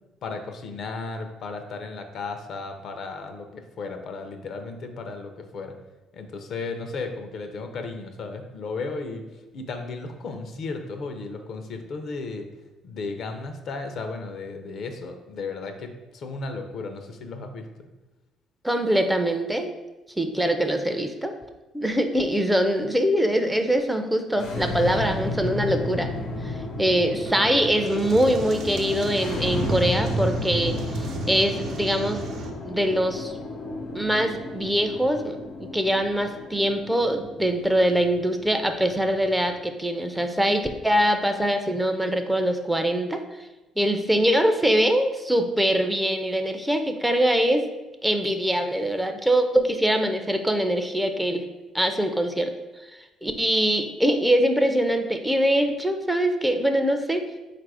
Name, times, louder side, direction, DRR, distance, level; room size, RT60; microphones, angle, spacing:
voice 1, 0.2-5.8 6.1-9.2 9.5-12.5 12.8-17.7, left 3 dB, 60° left, 6 dB, 0.5 m, -34 dB
voice 2, 18.6-19.7 20.2-21.3 21.7-26.1 26.4-26.5 26.8-32.2 32.7-33.3 33.9-43.2 43.8-47.6 48.0-51.5 51.7-52.5 53.2-57.3, right 1 dB, 5° right, 6 dB, 0.4 m, -23 dB
sound 1, 24.3-39.5, left 1 dB, 85° left, 0.9 m, -33 dB
sound 2, 27.2-32.5, right 2 dB, 65° right, 0.6 m, -34 dB
3.9 x 2.5 x 4.7 m, 1.1 s
cardioid pair, 90°, 0 cm